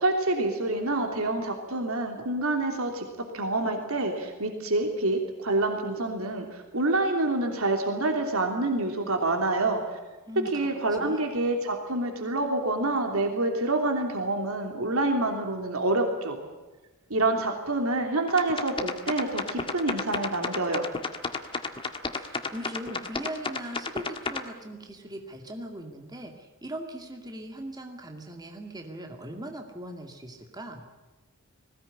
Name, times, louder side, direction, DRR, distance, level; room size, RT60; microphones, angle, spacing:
voice 1, 0.0-3.1 3.3-9.8 10.5-16.4 17.1-20.8, right 2 dB, 80° right, 3 dB, 3.1 m, -27 dB
voice 2, 10.3-10.7 11.0-11.2 22.1-30.9, right 1 dB, 20° right, 3 dB, 2.3 m, -40 dB
sound 1, 18.3-24.4, left 3 dB, 25° left, 1.6 m, -32 dB
20.5 x 17.5 x 9.8 m, 1.2 s
head